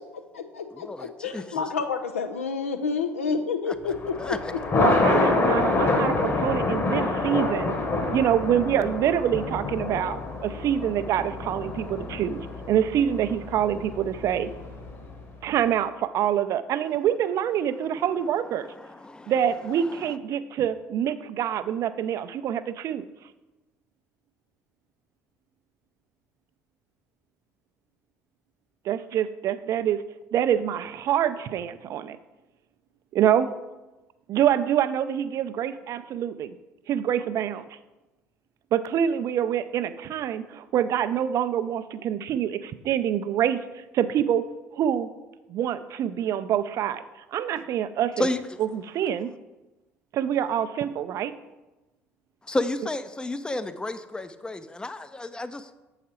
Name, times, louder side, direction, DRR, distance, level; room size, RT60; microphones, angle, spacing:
voice 1, 0.0-4.9, left 5 dB, 80° left, 6 dB, 0.4 m, -30 dB
voice 2, 0.7-1.6 3.7-3.9 4.2-4.5 18.8-19.3 48.2-48.4 52.5-55.7, left 2 dB, 10° left, 12 dB, 0.5 m, -31 dB
Thunder, 3.9-15.2, left 3 dB, 35° left, 1.3 m, -27 dB
voice 3, 4.8-7.8 8.1-14.5 15.4-18.7 19.3-23.0 28.8-30.0 30.3-32.2 33.1-33.5 34.3-36.5 36.9-37.6 38.7-44.4 44.7-45.1 45.5-47.0 47.3-48.3 48.6-49.3 50.1-51.3, right 10 dB, 50° right, 12 dB, 0.4 m, -26 dB
7.3 x 4.8 x 4.3 m, 1.1 s
figure-of-eight pair, 55°, 7 cm